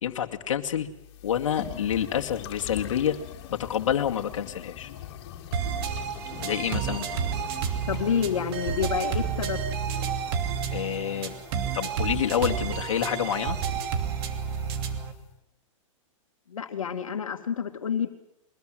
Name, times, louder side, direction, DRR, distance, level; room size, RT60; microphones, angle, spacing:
voice 1, 0.0-0.9 1.2-3.2 3.5-4.9 6.4-7.1 10.7-11.3 11.7-13.6, left 9 dB, 70° left, 3 dB, 2.4 m, -28 dB
sound 1, 0.9-15.2, left 11 dB, 50° left, 3.6 m, -43 dB
sound 2, 5.5-15.1, right 7 dB, 45° right, 2.9 m, -30 dB
voice 2, 7.9-9.6 16.5-18.1, left 7 dB, 90° left, 5 dB, 2.2 m, -28 dB
22.5 x 21.0 x 7.8 m, 0.86 s
hypercardioid pair, 140°, 17 cm